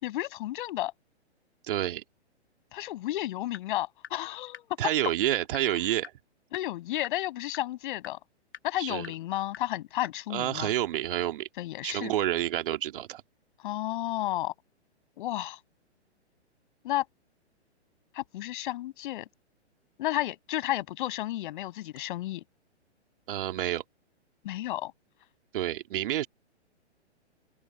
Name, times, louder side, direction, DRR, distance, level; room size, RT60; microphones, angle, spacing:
voice 1, 0.0-0.9 2.7-4.8 6.5-8.2 8.6-10.7 11.6-12.1 13.6-14.5 15.2-15.6 16.8-17.0 18.1-19.3 20.0-22.4 24.4-24.9, left 15 dB, 45° left, 6.0 m, -32 dB
voice 2, 1.7-2.0 4.8-6.1 8.8-9.1 10.3-11.5 11.8-13.2 23.3-23.8 25.5-26.3, right 12 dB, 50° right, 2.5 m, -29 dB
sound 1, 3.5-3.6 4.0-4.1 4.5-4.6 5.0-5.1 5.5-5.6 6.0-6.1 6.5-6.6 7.0-7.1 7.5-7.6 8.0-8.1 8.5-8.6 9.0-9.1 9.5-9.6 10.0-10.1, left 8 dB, 60° left, 7.0 m, -41 dB
open air
figure-of-eight pair, 125°, 34 cm